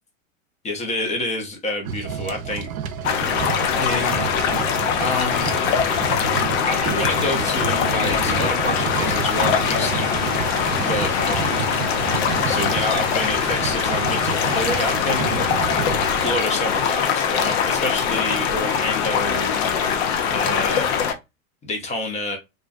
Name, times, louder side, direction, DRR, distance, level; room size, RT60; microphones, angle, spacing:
voice 1, 0.6-2.7 3.8-4.3 4.6-5.6 6.7-11.8 12.5-19.6 20.3-20.9 21.6-22.4, left 1 dB, 15° left, 3 dB, 0.7 m, -28 dB
sound 1, 1.8-16.4, right 7 dB, 85° right, 0.5 m, -30 dB
sound 2, 3.0-21.1, left 7 dB, 50° left, 0.6 m, -22 dB
sound 3, 8.9-15.2, right 5 dB, 30° right, 0.8 m, -38 dB
2.4 x 2.2 x 2.4 m, 0.23 s
hypercardioid pair, 105°, 41 cm